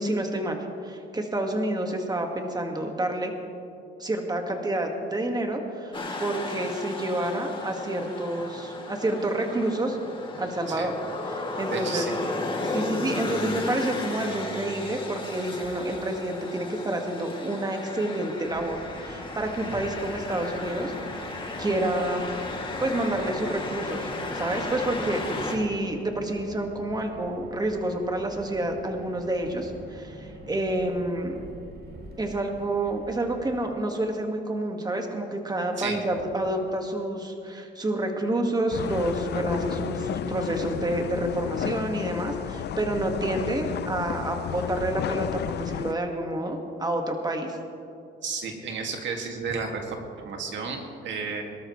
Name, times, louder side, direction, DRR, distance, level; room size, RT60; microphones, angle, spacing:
voice 1, 0.0-3.3 4.0-10.0 10.4-10.9 11.3-12.1 12.6-21.3 21.6-22.3 22.8-24.1 24.3-31.4 32.2-47.6, right 1 dB, 20° right, 3 dB, 1.8 m, -29 dB
sound 1, 5.9-25.5, left 2 dB, 25° left, 2.4 m, -34 dB
voice 2, 11.7-12.1 19.7-19.8 35.8-36.0 48.2-51.4, right 5 dB, 70° right, 2 dB, 2.2 m, -32 dB
Car, 18.4-33.6, right 1 dB, 55° right, 2.2 m, -45 dB
sound 2, 38.7-45.9, left 10 dB, 60° left, 0.5 m, -32 dB
23.0 x 13.0 x 3.2 m, 2.5 s
cardioid pair, 90°, 20 cm